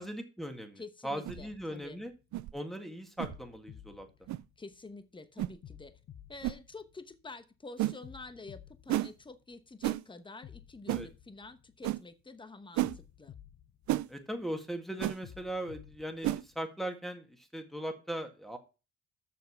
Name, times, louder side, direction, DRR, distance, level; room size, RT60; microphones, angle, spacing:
voice 1, 0.0-2.1 2.5-4.1 10.9-11.1 14.1-18.6, right 1 dB, ahead, 5 dB, 2.0 m, -39 dB
voice 2, 0.8-2.0 4.6-6.0 6.3-13.4, left 3 dB, 15° left, 11 dB, 1.0 m, -48 dB
sound 1, 1.2-1.4 2.3-2.5 3.2-3.4 4.3-4.4 5.4-5.6 6.4-6.6 7.8-8.0 8.9-9.1 9.8-10.0 10.9-11.1 11.8-12.0 12.8-13.0 13.9-14.1 15.0-15.2 16.2-16.4, right 15 dB, 70° right, 0.5 m, -31 dB
sound 2, 1.3-2.6 3.2-4.9 5.6-7.4 8.0-9.8 10.4-12.2 12.8-14.5 15.2-16.6, left 10 dB, 60° left, 1.0 m, -54 dB
7.5 x 6.6 x 5.7 m, 0.31 s
cardioid pair, 90°, 30 cm